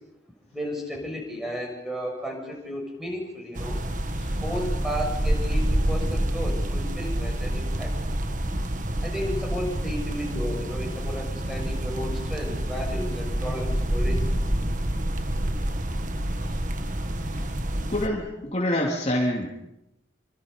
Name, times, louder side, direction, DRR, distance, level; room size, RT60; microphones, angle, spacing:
voice 1, 0.5-3.8 4.4-7.9 9.0-14.3, equal, ahead, 0 dB, 7.0 m, -33 dB
sound 1, 3.5-18.1, right 1 dB, 45° right, 1.7 m, -27 dB
voice 2, 17.9-19.5, left 1 dB, 35° left, -1 dB, 3.0 m, -26 dB
28.5 x 25.5 x 5.3 m, 0.89 s
head